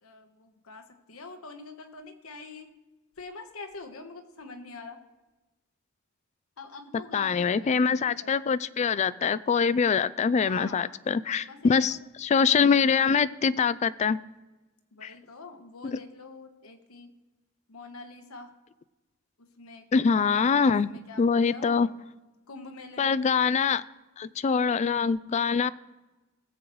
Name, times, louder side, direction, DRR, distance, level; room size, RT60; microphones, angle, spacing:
voice 1, 0.0-2.7 3.2-5.0 6.6-8.3 10.3-11.0 11.4-12.0 12.5-13.3 14.9-17.1 17.7-18.5 19.4-21.9 22.5-23.2, left 3 dB, 90° left, 6 dB, 1.2 m, -45 dB
voice 2, 7.1-14.2 15.0-15.1 19.9-20.9 21.2-21.9 23.0-23.8 24.2-25.7, left 5 dB, 35° left, 17 dB, 0.3 m, -24 dB
18.5 x 7.7 x 3.1 m, 1.1 s
head